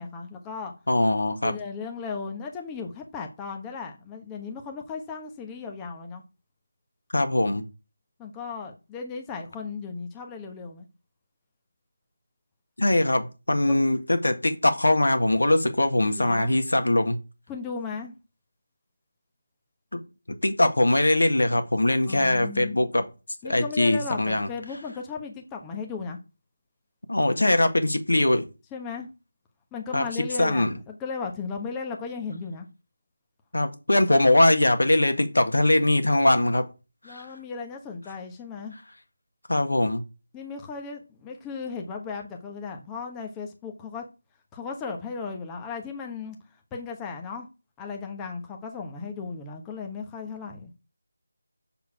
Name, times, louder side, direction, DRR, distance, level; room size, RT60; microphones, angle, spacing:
voice 1, 0.0-0.7 1.4-6.2 8.2-10.9 13.6-13.8 16.2-16.6 17.5-18.1 22.1-22.9 23.4-26.2 28.7-29.1 29.7-32.7 37.0-38.8 40.3-44.0 44.5-46.4 46.7-47.5 47.8-50.7, left 5 dB, 10° left, 1.1 m, -36 dB
voice 2, 0.9-1.5 7.1-7.6 12.8-17.2 19.9-20.0 20.4-23.0 23.4-24.5 27.1-28.4 29.9-30.0 30.4-30.7 33.5-36.6 37.1-37.3 39.5-40.0, left 1 dB, 70° left, 1.7 m, -21 dB
7.3 x 6.8 x 4.8 m
figure-of-eight pair, 160°, 0 cm